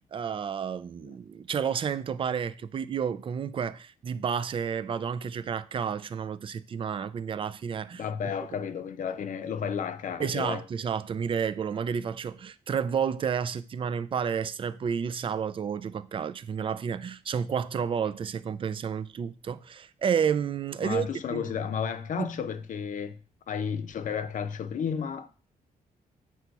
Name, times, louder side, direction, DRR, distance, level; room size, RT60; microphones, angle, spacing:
voice 1, 0.1-8.0 10.2-21.5 22.2-22.3, right 7 dB, 35° right, 0.3 m, -31 dB
voice 2, 7.9-10.6 20.8-23.1 23.5-25.3, left 7 dB, 60° left, 0.6 m, -32 dB
8.0 x 2.9 x 4.6 m
cardioid pair, 125°, 15 cm